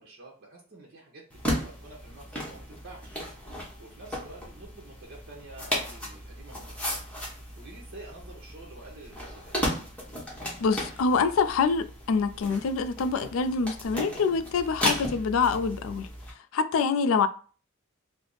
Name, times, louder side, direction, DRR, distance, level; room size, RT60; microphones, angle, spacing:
voice 1, 0.0-3.2 3.8-7.0 7.6-9.5, right 2 dB, 50° right, 0.8 m, -48 dB
sound 1, 1.3-16.3, equal, 5° left, 0.9 m, -35 dB
voice 2, 10.6-16.1 16.5-17.3, left 5 dB, 75° left, 0.3 m, -25 dB
3.3 x 2.0 x 3.8 m
head